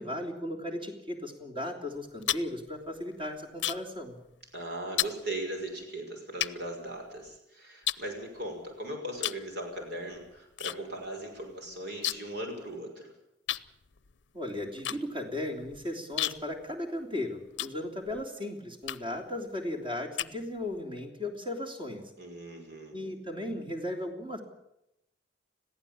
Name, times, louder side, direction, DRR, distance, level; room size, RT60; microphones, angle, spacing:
voice 1, 0.0-4.2 14.3-22.1 22.9-24.4, left 1 dB, 30° right, 3 dB, 3.3 m, -36 dB
sound 1, 1.9-4.0 4.3-4.6 5.0-5.2 5.8-5.9 6.4-7.4 7.8-8.7 9.2-9.5 9.8-10.8 11.0-11.1 11.4-12.4 12.7-12.8 13.5-18.2 18.8-19.3 19.7-20.8, left 13 dB, 70° left, 0.7 m, -34 dB
voice 2, 4.5-13.1 22.2-23.1, right 1 dB, 60° right, 3 dB, 5.9 m, -39 dB
21.5 x 15.5 x 8.8 m, 0.85 s
head